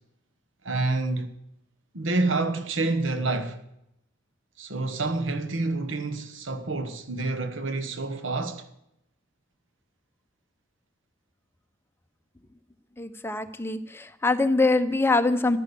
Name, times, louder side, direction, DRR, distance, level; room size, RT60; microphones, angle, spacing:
voice 1, 0.6-1.3 1.9-3.6 4.6-8.7, right 2 dB, 85° right, 1.3 m, -28 dB
voice 2, 13.0-15.6, left 3 dB, 10° left, 0.8 m, -24 dB
14.0 x 10.0 x 6.9 m
head